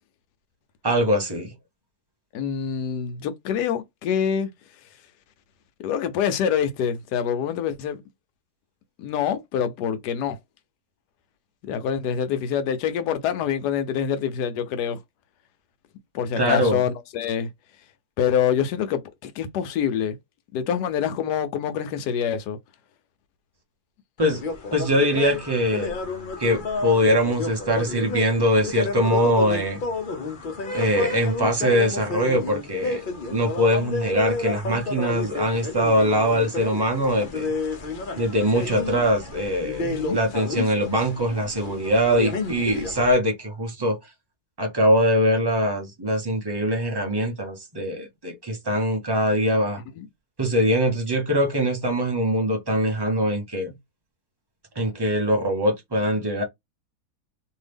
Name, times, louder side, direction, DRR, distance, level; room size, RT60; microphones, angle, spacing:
voice 1, 0.8-1.5 16.4-16.8 24.2-24.4 24.7-26.0 26.4-29.8 30.7-33.0 33.3-37.5 38.2-44.1 44.6-49.8 50.4-53.7 54.8-56.4, equal, 25° right, 0.5 m, -22 dB
voice 2, 2.3-4.5 5.8-8.0 9.0-10.4 11.7-15.0 16.1-17.5 18.2-20.2 20.5-22.6 39.8-40.2 50.0-50.1, left 8 dB, 85° left, 1.2 m, -26 dB
sound 1, 24.2-43.1, left 3 dB, 50° left, 0.6 m, -31 dB
2.7 x 2.7 x 3.4 m
omnidirectional pair, 1.7 m